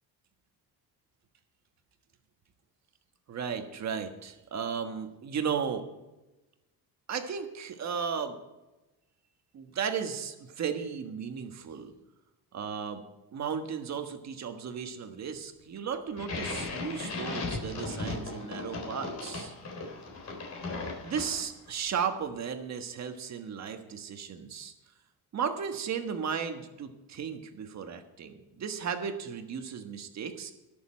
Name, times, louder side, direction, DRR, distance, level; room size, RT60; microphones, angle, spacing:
voice 1, 3.3-5.8 7.1-8.4 9.5-11.9 12.5-13.0 13.3-19.5 21.0-24.7 25.3-30.5, right 7 dB, 40° right, 6 dB, 1.5 m, -35 dB
sound 1, 16.2-21.7, left 3 dB, 40° left, 3.8 m, -37 dB
20.5 x 7.0 x 4.4 m, 1.0 s
cardioid pair, 140°, 40 cm